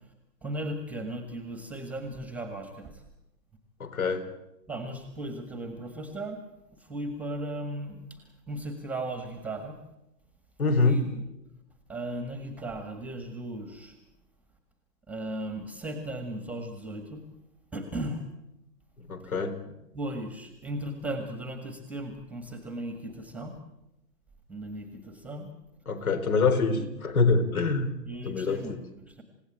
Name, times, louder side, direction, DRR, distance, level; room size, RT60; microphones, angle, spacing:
voice 1, 0.4-3.0 4.7-6.4 6.9-8.2 8.5-9.8 10.7-11.2 11.9-13.9 15.1-17.2 17.7-18.2 19.9-23.6 24.5-25.5 26.7-26.9 28.1-29.2, right 1 dB, 5° right, 7 dB, 1.7 m, -36 dB
voice 2, 3.8-4.2 10.6-11.0 19.1-19.5 25.9-27.9 28.2-28.8, left 4 dB, 60° left, 9 dB, 4.1 m, -25 dB
28.5 x 17.0 x 8.7 m, 0.90 s
figure-of-eight pair, 140°, 49 cm